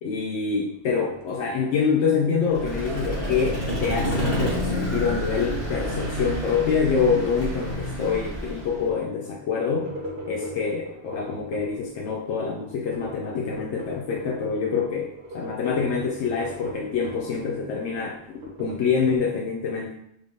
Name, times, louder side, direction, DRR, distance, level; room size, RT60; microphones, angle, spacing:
voice 1, 0.0-9.9 10.3-19.9, left 5 dB, 80° left, -2 dB, 0.9 m, -26 dB
sound 1, 0.7-2.3 2.6-7.4 9.2-11.8 12.6-14.6 15.0-17.4 17.8-19.2, right 1 dB, 50° right, 0.8 m, -40 dB
Vehicle, 2.5-8.9, equal, 15° right, 1.2 m, -29 dB
3.6 x 3.5 x 2.6 m, 0.75 s
omnidirectional pair, 1.2 m